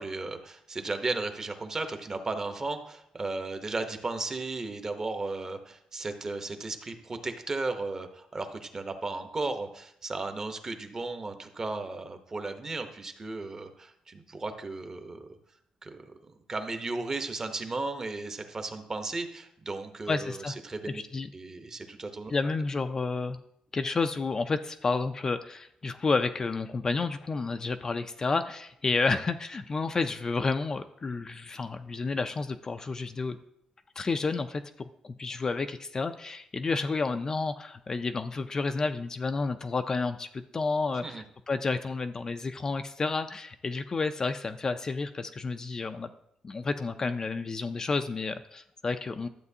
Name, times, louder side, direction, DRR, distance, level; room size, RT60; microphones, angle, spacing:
voice 1, 0.0-15.3 15.8-21.0 21.3-22.5 41.0-41.2, right 3 dB, 25° right, 7 dB, 0.8 m, -35 dB
voice 2, 20.1-20.5 20.9-21.3 22.3-23.4 23.7-33.4 34.0-46.1 46.4-49.3, left 4 dB, 30° left, 8 dB, 0.3 m, -30 dB
12.0 x 7.7 x 2.7 m, 0.73 s
wide cardioid pair, 145°, 2 cm